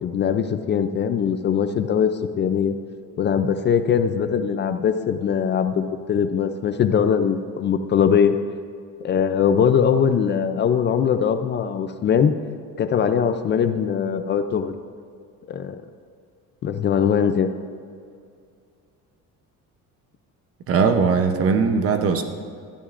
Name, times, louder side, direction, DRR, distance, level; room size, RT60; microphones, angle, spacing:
voice 1, 0.0-2.8 3.2-8.4 9.0-12.3 12.8-14.7 15.5-15.8 16.6-17.5, left 7 dB, 30° left, 9 dB, 0.4 m, -21 dB
voice 2, 20.7-22.2, right 5 dB, 40° right, 6 dB, 0.7 m, -19 dB
19.5 x 13.0 x 2.5 m, 2.3 s
cardioid pair, 175°, 36 cm